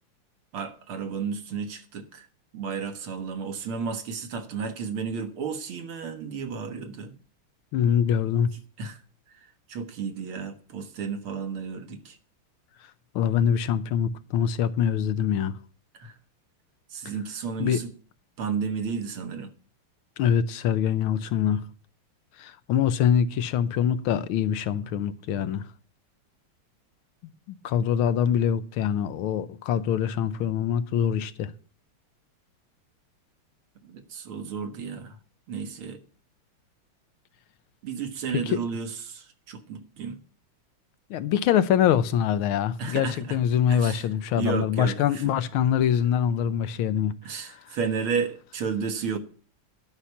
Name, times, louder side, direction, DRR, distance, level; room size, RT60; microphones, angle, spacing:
voice 1, 0.5-2.3 2.5-7.1 8.8-9.0 9.3-12.2 15.9-16.2 16.9-17.9 18.4-19.5 33.8-35.2 35.5-36.0 37.8-40.2 42.8-43.4 43.7-44.1 44.4-45.3 47.2-49.2, right 6 dB, 75° right, 2.2 m, -32 dB
voice 2, 7.7-8.5 13.1-15.6 17.6-17.8 20.2-21.6 22.4-25.7 27.6-31.5 38.3-38.6 41.1-47.1, left 9 dB, 75° left, 1.5 m, -24 dB
11.5 x 5.8 x 8.2 m
omnidirectional pair, 2.4 m